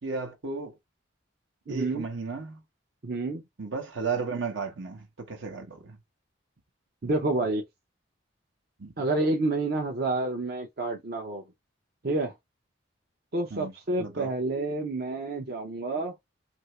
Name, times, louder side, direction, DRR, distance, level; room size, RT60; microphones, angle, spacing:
voice 1, 0.0-0.8 1.7-2.6 3.6-6.0 8.8-9.1 13.5-13.7 14.0-14.3, right 4 dB, 75° right, 1.0 m, -34 dB
voice 2, 1.7-2.0 3.0-3.4 7.0-7.6 9.0-11.4 12.0-12.3 13.3-16.1, right 2 dB, 55° right, 0.6 m, -29 dB
2.8 x 2.6 x 3.0 m
head